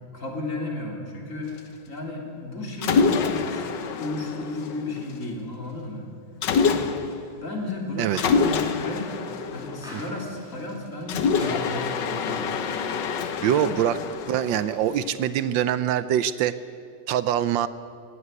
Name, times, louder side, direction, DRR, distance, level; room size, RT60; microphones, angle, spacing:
voice 1, 0.1-1.6 1.9-6.0 6.6-6.9 7.3-9.1 9.5-12.9 13.6-13.8, left 2 dB, 40° left, 0 dB, 3.7 m, -33 dB
Mechanisms, 2.8-5.2 6.4-7.3 8.2-10.5 11.1-15.2, left 5 dB, 70° left, 1.6 m, -26 dB
sound 1, 8.1-8.8 9.8-10.5 11.4-11.9, equal, ahead, 4.9 m, -43 dB
voice 2, 13.4-14.0 14.3-16.5 17.1-17.7, right 10 dB, 80° right, 14 dB, 1.4 m, -23 dB
18.0 x 15.5 x 9.6 m, 2.4 s
omnidirectional pair, 2.0 m